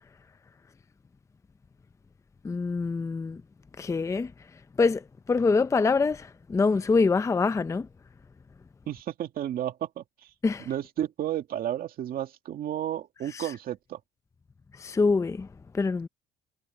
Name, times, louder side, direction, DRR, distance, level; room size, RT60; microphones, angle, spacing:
voice 1, 2.4-3.4 3.8-4.3 4.8-5.0 5.3-7.9 10.4-10.7 13.3-13.5 14.8-15.5 15.7-16.1, left 4 dB, 20° left, 0.5 m, -25 dB
voice 2, 8.9-10.0 10.7-14.0, right 11 dB, 60° right, 2.3 m, -32 dB
cardioid pair, 110°, 17 cm